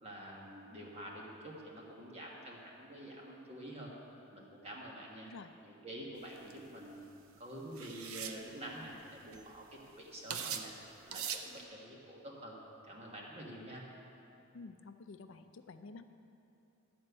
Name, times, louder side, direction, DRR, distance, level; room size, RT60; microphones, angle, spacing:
voice 1, 0.0-3.9 4.3-5.3 5.6-7.1 7.4-10.7 11.1-12.6 12.9-13.8, right 1 dB, 30° right, -2 dB, 1.4 m, -48 dB
sound 1, 6.4-6.5 7.8-8.4 9.1-9.2 9.3-9.7 10.3-10.7 11.1-11.5, right 7 dB, 85° right, 0.6 m, -40 dB
voice 2, 14.5-16.0, left 4 dB, 60° left, 9 dB, 0.5 m, -50 dB
12.0 x 4.3 x 8.1 m, 2.8 s
head